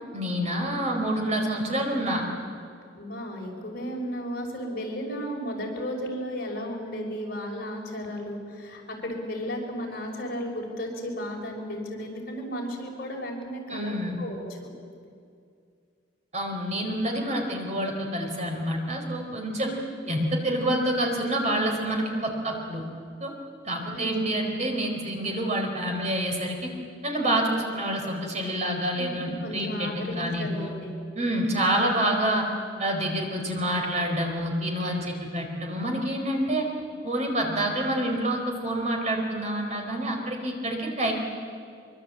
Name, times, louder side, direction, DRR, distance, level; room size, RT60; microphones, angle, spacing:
voice 1, 0.1-2.2 13.7-14.2 16.3-19.8 20.1-22.8 23.2-23.3 23.6-26.7 27.0-30.7 31.1-32.5 32.8-36.7 37.0-41.1, right 1 dB, 35° right, 2 dB, 4.3 m, -27 dB
voice 2, 3.0-14.7 19.6-20.2 23.9-24.3 28.9-30.9 31.4-31.5 31.8-31.9, equal, 55° left, 0 dB, 5.8 m, -34 dB
24.0 x 24.0 x 8.6 m, 2.3 s
head